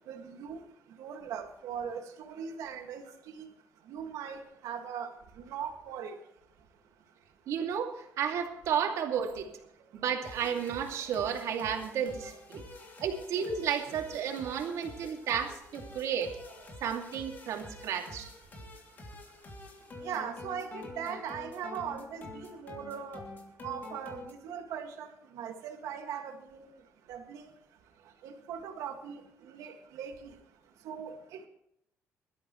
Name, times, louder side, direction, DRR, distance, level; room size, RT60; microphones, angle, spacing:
voice 1, 0.1-0.6 1.0-3.5 3.9-5.1 5.4-6.1 13.9-14.0 20.0-23.2 23.6-25.1 25.3-26.7 27.1-27.4 28.2-30.3 30.8-31.5, right 7 dB, 85° right, 4 dB, 2.1 m, -40 dB
voice 2, 7.5-9.5 9.9-12.6 13.0-16.4 16.8-18.3, right 8 dB, 70° right, 3 dB, 2.5 m, -32 dB
sound 1, 10.2-24.3, left 2 dB, 35° left, 2.8 m, -47 dB
21.5 x 13.0 x 3.2 m, 0.77 s
cardioid pair, 160°, 6 cm